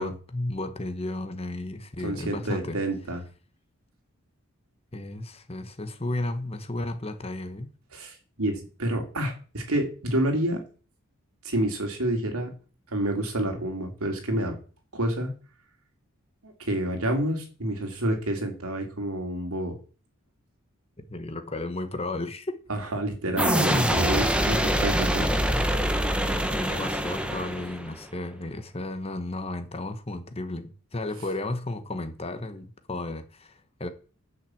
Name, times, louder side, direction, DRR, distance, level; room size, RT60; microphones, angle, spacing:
voice 1, 0.0-2.8 4.9-7.7 21.0-22.6 23.7-23.9 26.5-33.9, left 2 dB, 25° left, 1.1 m, -34 dB
voice 2, 2.0-3.2 7.9-10.6 11.4-12.5 12.9-14.5 14.9-15.3 16.4-19.7 22.7-25.3, right 1 dB, 85° right, 2.9 m, -28 dB
sound 1, 23.4-28.0, equal, 5° right, 1.0 m, -25 dB
10.5 x 5.7 x 7.7 m
head